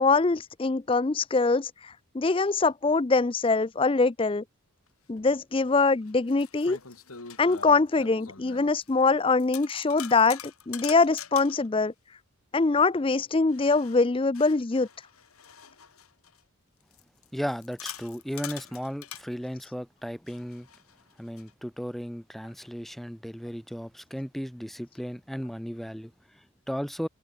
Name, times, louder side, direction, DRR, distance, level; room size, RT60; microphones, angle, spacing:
voice 1, 0.0-1.7 2.1-4.4 5.1-6.8 7.4-10.4 10.7-11.9 12.5-14.9, left 3 dB, 25° left, 0.4 m, -23 dB
sound 1, 5.2-5.3 6.0-9.1 9.4-11.7 13.5-16.4 16.9-19.3 20.3-21.5, left 8 dB, 90° left, 3.1 m, -44 dB
voice 2, 17.3-20.7 21.2-27.1, equal, ahead, 0.8 m, -35 dB
head